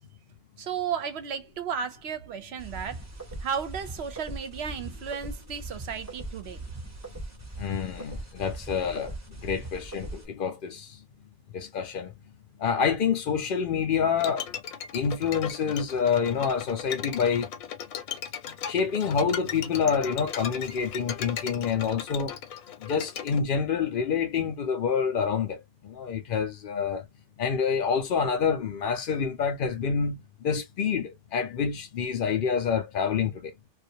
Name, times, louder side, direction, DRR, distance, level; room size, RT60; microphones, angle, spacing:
voice 1, 0.6-3.0 3.4-6.6, right 7 dB, 60° right, 0.8 m, -34 dB
sound 1, 2.6-10.3, right 2 dB, 20° right, 0.5 m, -40 dB
voice 2, 7.6-11.0 11.5-12.1 12.6-14.5 14.9-17.5 18.5-22.4 22.8-27.1 27.4-33.7, left 6 dB, 60° left, 0.6 m, -27 dB
Bowed string instrument, 14.2-23.4, left 8 dB, 90° left, 1.1 m, -37 dB
2.4 x 2.3 x 2.7 m
omnidirectional pair, 1.4 m